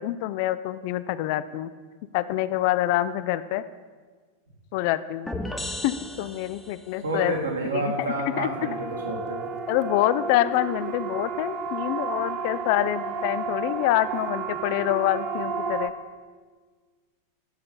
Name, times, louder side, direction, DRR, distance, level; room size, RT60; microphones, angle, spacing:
voice 1, 0.0-1.7 2.1-3.6 4.7-5.3 5.8-7.3 7.7-8.5 9.7-15.9, left 14 dB, 45° left, 14 dB, 0.4 m, -26 dB
sound 1, 5.3-7.0, left 1 dB, 5° left, 0.8 m, -35 dB
voice 2, 7.0-9.5, right 2 dB, 70° right, -1 dB, 2.2 m, -29 dB
Siren, 8.3-15.9, right 5 dB, 35° right, 0.8 m, -32 dB
11.0 x 6.5 x 5.4 m, 1.5 s
figure-of-eight pair, 90°, 0 cm